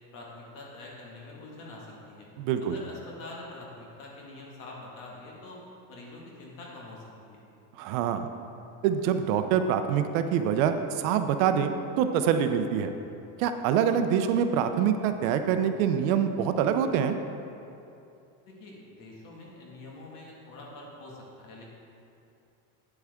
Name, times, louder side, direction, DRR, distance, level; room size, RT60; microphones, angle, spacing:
voice 1, 0.1-2.3 2.6-5.6 5.9-7.4 18.5-21.6, left 2 dB, 50° left, -3 dB, 2.0 m, -45 dB
voice 2, 2.4-2.8 7.8-8.3 8.8-12.9 13.4-17.2, right 8 dB, 75° right, 8 dB, 0.7 m, -25 dB
9.1 x 8.0 x 3.6 m, 2.6 s
cardioid pair, 160°, 41 cm